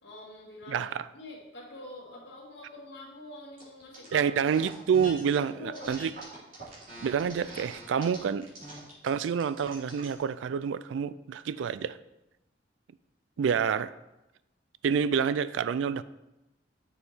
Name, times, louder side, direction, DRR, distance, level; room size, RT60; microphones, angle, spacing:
voice 1, 0.0-0.9 1.1-4.2 5.3-5.9, left 1 dB, 65° left, 2.0 m, -45 dB
voice 2, 0.7-1.1 4.1-6.1 7.0-8.5 9.0-12.0 13.4-13.9 14.8-16.0, right 7 dB, 90° right, 0.3 m, -28 dB
sound 1, 3.6-4.1 4.4-5.4 5.7-10.1, right 2 dB, 50° right, 3.1 m, -44 dB
6.9 x 6.8 x 4.4 m
head